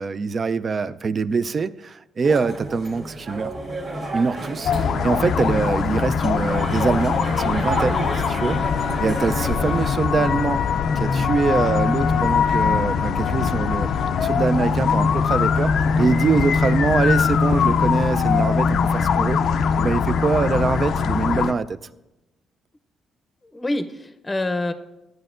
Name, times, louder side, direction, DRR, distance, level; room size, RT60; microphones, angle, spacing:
voice 1, 0.0-3.5 4.1-8.6 9.0-10.6 11.0-13.9 14.2-19.4 19.8-21.8, right 4 dB, 40° right, 14 dB, 0.4 m, -24 dB
sound 1, 2.2-9.9, right 2 dB, 65° right, 2.1 m, -31 dB
sound 2, 4.6-21.5, left 6 dB, 65° left, 0.4 m, -21 dB
voice 2, 23.4-24.7, left 2 dB, 20° left, 9 dB, 0.7 m, -27 dB
14.0 x 9.1 x 2.5 m, 0.99 s
cardioid pair, 90°, 0 cm